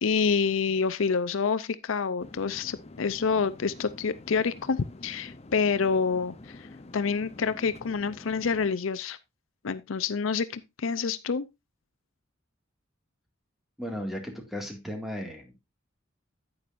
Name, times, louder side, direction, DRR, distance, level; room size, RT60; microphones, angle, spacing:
voice 1, 0.0-6.7 6.9-9.2 9.6-11.5, left 5 dB, 75° left, 0.6 m, -27 dB
sound 1, 2.2-8.7, left 2 dB, 30° left, 0.7 m, -47 dB
voice 2, 13.8-15.5, equal, ahead, 2.0 m, -35 dB
9.6 x 9.2 x 2.5 m
head